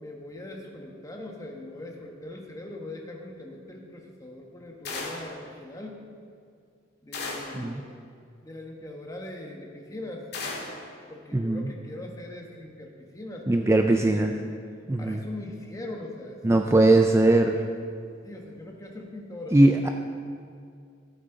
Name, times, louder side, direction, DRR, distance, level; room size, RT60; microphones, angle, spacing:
voice 1, 0.0-6.0 7.0-7.9 8.4-10.2 11.1-14.3 15.0-17.0 18.2-19.6, left 1 dB, 20° left, 0 dB, 1.3 m, -41 dB
sound 1, 4.9-5.4 7.1-7.7 10.3-10.8, left 3 dB, 60° left, 1.9 m, -35 dB
voice 2, 11.3-11.7 13.5-14.3 14.9-15.2 16.4-17.6 19.5-19.9, right 2 dB, 15° right, 5 dB, 0.4 m, -20 dB
15.5 x 9.1 x 3.9 m, 2.3 s
head